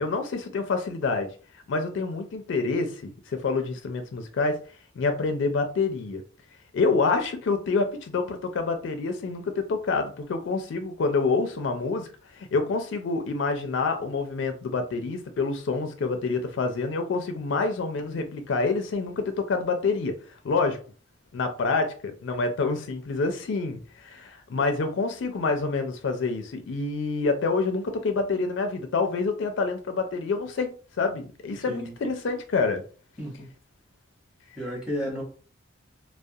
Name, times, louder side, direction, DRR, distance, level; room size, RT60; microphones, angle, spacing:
voice 1, 0.0-1.3 1.7-4.6 5.0-6.2 6.7-12.1 12.3-20.2 20.4-20.8 21.3-32.8, left 4 dB, 70° left, 0.4 m, -27 dB
voice 2, 34.6-35.2, equal, 5° right, 0.8 m, -32 dB
2.3 x 2.1 x 2.6 m
head